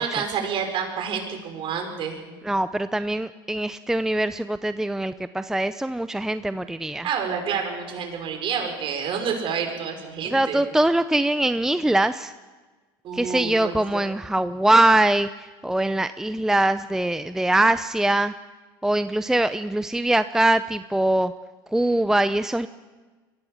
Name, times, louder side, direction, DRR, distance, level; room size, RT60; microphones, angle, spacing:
voice 1, 0.0-2.2 7.0-10.6 13.0-13.7, right 6 dB, 50° right, 3 dB, 5.3 m, -28 dB
voice 2, 2.4-7.1 10.3-12.3 13.1-18.3 18.8-21.3 21.7-22.7, right 1 dB, 5° right, 12 dB, 0.6 m, -22 dB
22.5 x 16.0 x 7.3 m, 1.3 s
supercardioid pair, 95°, 12 cm